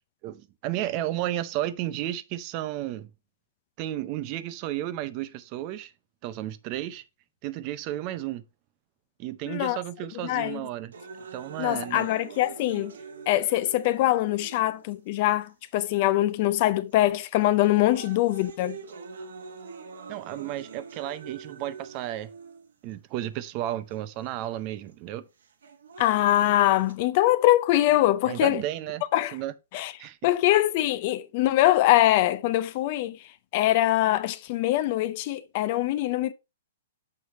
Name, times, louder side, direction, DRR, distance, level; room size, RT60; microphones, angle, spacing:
voice 1, 0.2-3.1 3.8-5.9 6.2-7.0 7.4-8.4 9.2-10.9 11.3-12.1 20.1-22.3 22.8-25.3 28.3-29.0 29.3-29.5 30.0-30.2, right 13 dB, 30° right, 0.5 m, -33 dB
voice 2, 9.5-9.8 10.2-10.6 11.6-12.9 13.3-18.8 26.0-28.6 29.1-29.3 29.7-29.9 30.2-33.2 33.5-36.3, left 15 dB, 35° left, 0.4 m, -23 dB
sound 1, 10.9-14.9 15.7-15.8 16.6-16.9 17.4-22.9 23.9-24.0 25.4-26.9, right 5 dB, 85° right, 1.4 m, -44 dB
6.5 x 4.8 x 4.1 m
hypercardioid pair, 160°, 0 cm